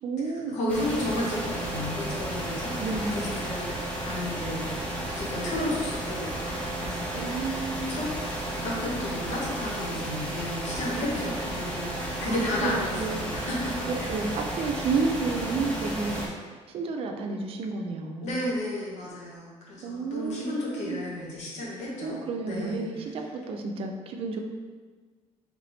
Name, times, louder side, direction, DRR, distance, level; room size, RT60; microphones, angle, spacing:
voice 1, 0.0-0.6 2.8-3.3 7.1-8.1 12.2-13.3 13.9-18.4 19.8-21.0 22.0-24.4, right 3 dB, 55° right, 3 dB, 0.5 m, -31 dB
voice 2, 0.5-8.1 8.5-14.1 18.2-22.8, left 1 dB, 85° left, -4 dB, 1.2 m, -33 dB
sound 1, 0.7-16.3, right 1 dB, 10° left, 0.7 m, -33 dB
3.4 x 3.2 x 3.9 m, 1.4 s
cardioid pair, 180°, 12 cm